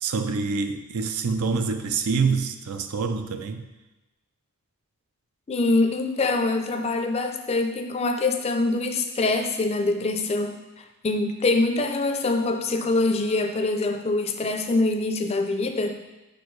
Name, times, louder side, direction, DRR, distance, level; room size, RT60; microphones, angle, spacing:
voice 1, 0.0-3.7, right 4 dB, 80° right, 0.5 m, -26 dB
voice 2, 5.5-16.0, left 2 dB, 30° left, 0.4 m, -24 dB
7.4 x 4.4 x 3.1 m
head